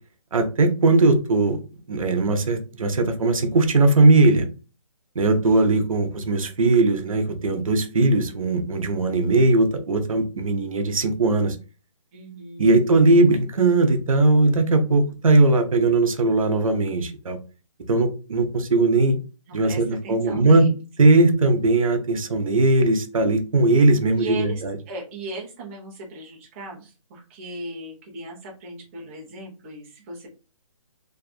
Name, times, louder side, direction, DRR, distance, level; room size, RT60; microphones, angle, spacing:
voice 1, 0.3-1.6 1.9-4.5 5.2-11.6 12.6-17.4 17.9-19.2 19.5-20.7 21.0-24.7, right 2 dB, 80° right, 6 dB, 0.7 m, -19 dB
voice 2, 12.1-12.8 19.5-20.8 24.1-30.3, right 2 dB, 25° right, -1 dB, 0.8 m, -37 dB
2.7 x 2.4 x 2.3 m, 0.33 s
hypercardioid pair, 155°, 17 cm